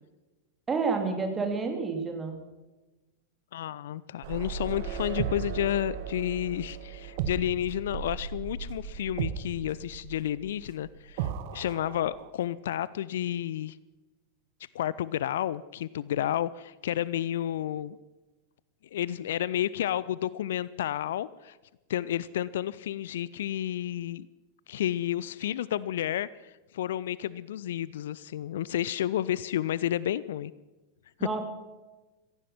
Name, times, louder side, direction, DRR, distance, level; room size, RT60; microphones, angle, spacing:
voice 1, 0.7-2.4 31.2-31.4, right 4 dB, 20° right, 4 dB, 2.9 m, -29 dB
voice 2, 3.5-13.8 14.7-18.0 18.9-21.6 21.9-24.3 24.7-30.5, left 12 dB, 60° left, 19 dB, 0.4 m, -31 dB
sound 1, 4.2-12.3, right 8 dB, 50° right, 1.4 m, -36 dB
16.5 x 15.0 x 5.8 m, 1.1 s
figure-of-eight pair, 90°, 0 cm